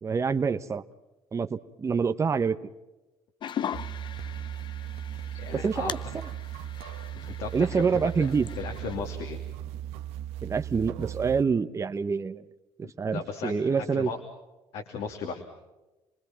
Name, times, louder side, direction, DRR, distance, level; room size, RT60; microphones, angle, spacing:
voice 1, 0.0-0.8 1.3-2.7 5.5-6.0 7.5-8.5 10.4-12.4 13.0-14.1, right 5 dB, 30° right, 9 dB, 1.0 m, -26 dB
sound 1, 3.4-9.0, left 9 dB, 50° left, 0.8 m, -40 dB
sound 2, 3.7-11.4, right 11 dB, 85° right, 1.2 m, -37 dB
voice 2, 5.3-6.2 7.1-8.3 8.6-9.4 12.8-14.2 14.7-15.4, left 5 dB, 75° left, 3 dB, 2.7 m, -37 dB
28.5 x 20.5 x 5.9 m, 1.1 s
supercardioid pair, 85°, 10 cm